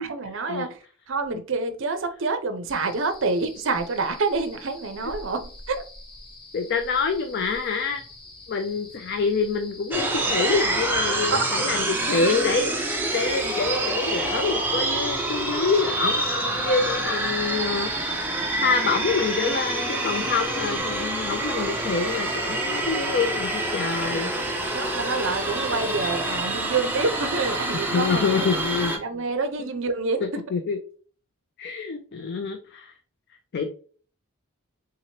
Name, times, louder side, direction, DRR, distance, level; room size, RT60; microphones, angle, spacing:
voice 1, 0.0-5.8 11.3-11.6 24.0-24.3 24.7-28.5 28.9-30.4, right 3 dB, 60° right, 0.6 m, -27 dB
sound 1, 2.7-20.8, left 2 dB, 20° left, 0.8 m, -46 dB
voice 2, 6.5-8.0 8.5-12.7 13.1-24.3 27.8-29.0 30.2-30.8 31.6-32.9 33.5-33.7, left 4 dB, 50° left, 0.4 m, -26 dB
sound 2, 9.9-29.0, right 2 dB, 10° right, 0.5 m, -27 dB
3.7 x 2.9 x 2.8 m
head